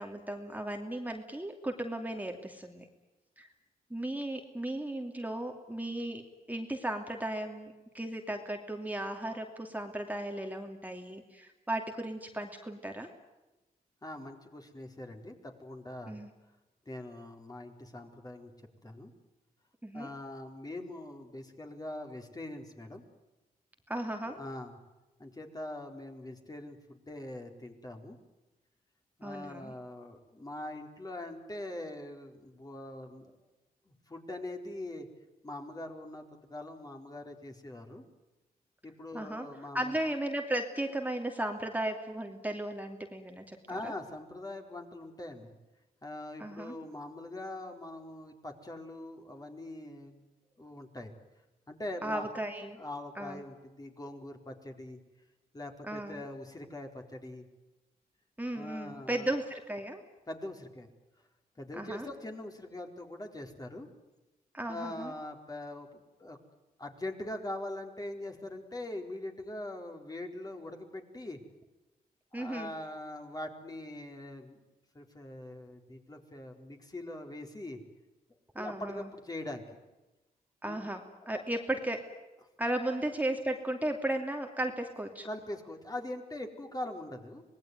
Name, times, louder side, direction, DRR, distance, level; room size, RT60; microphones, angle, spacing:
voice 1, 0.0-2.9 3.4-3.5 3.9-6.2 6.5-13.1 16.1-16.3 19.8-20.1 23.9-24.4 29.2-29.7 39.1-39.5 39.7-43.9 46.4-46.7 52.0-52.8 53.2-53.4 55.8-56.2 58.4-60.0 61.8-62.1 64.5-65.1 72.3-72.7 78.5-79.1 80.6-82.0 82.6-85.3, right 1 dB, 10° right, 3 dB, 2.7 m, -35 dB
voice 2, 14.0-16.2 16.9-18.5 18.8-19.1 19.9-23.0 24.3-24.8 25.2-28.2 29.2-33.3 33.9-35.1 35.4-38.0 38.8-39.9 43.7-45.5 46.0-50.2 50.6-51.1 51.7-52.3 52.7-55.0 55.5-57.5 58.5-59.3 60.3-60.9 61.6-63.9 64.7-66.4 66.8-71.4 72.3-74.6 74.9-77.8 78.6-79.6 80.6-80.8 81.2-81.4 82.9-83.0 85.2-87.4, left 1 dB, 25° left, 4 dB, 4.3 m, -42 dB
26.0 x 20.0 x 9.4 m, 1.1 s
cardioid pair, 85°, 16 cm